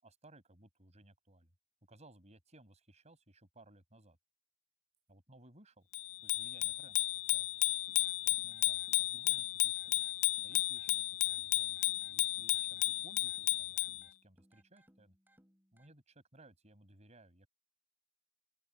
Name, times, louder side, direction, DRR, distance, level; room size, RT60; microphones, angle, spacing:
voice 1, 0.0-1.5 1.9-4.2 5.1-5.9 6.2-7.5 8.2-10.0 10.4-10.9 11.2-15.1 15.7-17.5, right 1 dB, 30° right, 6.4 m, -61 dB
Bicycle bell, 5.9-14.0, left 21 dB, 85° left, 0.3 m, -33 dB
sound 1, 7.9-15.9, equal, 10° right, 5.3 m, -69 dB
open air
head